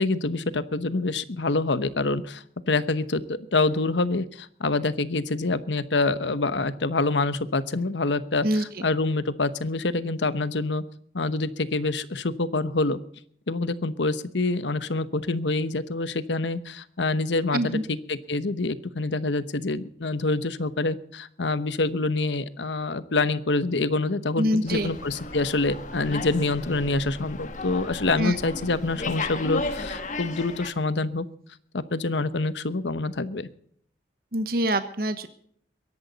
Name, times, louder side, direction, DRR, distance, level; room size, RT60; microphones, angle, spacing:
voice 1, 0.0-10.8 11.1-13.0 13.5-31.2 31.7-33.5, left 3 dB, 80° left, 14 dB, 1.0 m, -26 dB
voice 2, 17.5-17.8 24.4-24.9 28.2-28.4 34.3-35.4, equal, 55° right, 10 dB, 1.1 m, -25 dB
Slam, 24.7-30.7, left 3 dB, 40° left, 1.5 m, -34 dB
23.0 x 11.0 x 4.0 m, 0.63 s
head